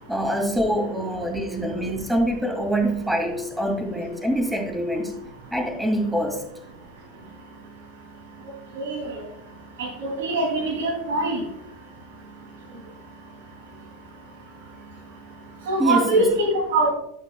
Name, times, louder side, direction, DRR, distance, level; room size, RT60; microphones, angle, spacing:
voice 1, 0.1-5.1 5.5-6.4 15.8-16.3, equal, 5° right, 3 dB, 2.1 m, -25 dB
voice 2, 9.8-11.4 15.7-16.9, right 2 dB, 75° right, -2 dB, 2.5 m, -23 dB
12.0 x 6.0 x 2.2 m, 0.80 s
hypercardioid pair, 95°, 0 cm